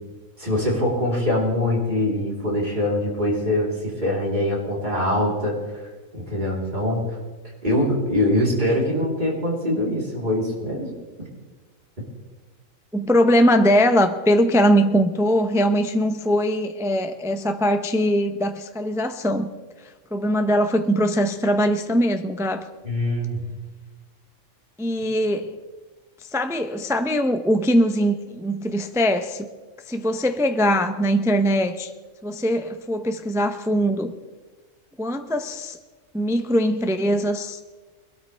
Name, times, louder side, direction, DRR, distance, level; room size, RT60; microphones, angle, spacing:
voice 1, 0.4-7.0 7.6-10.9 22.8-23.4, left 1 dB, 35° right, -3 dB, 3.9 m, -23 dB
voice 2, 12.9-19.5 19.8-22.6 24.8-25.6 26.3-29.5 29.9-31.9 32.2-34.1 35.0-35.8 36.1-37.6, equal, 5° right, 7 dB, 0.4 m, -21 dB
22.0 x 13.0 x 3.4 m, 1.3 s
omnidirectional pair, 1.4 m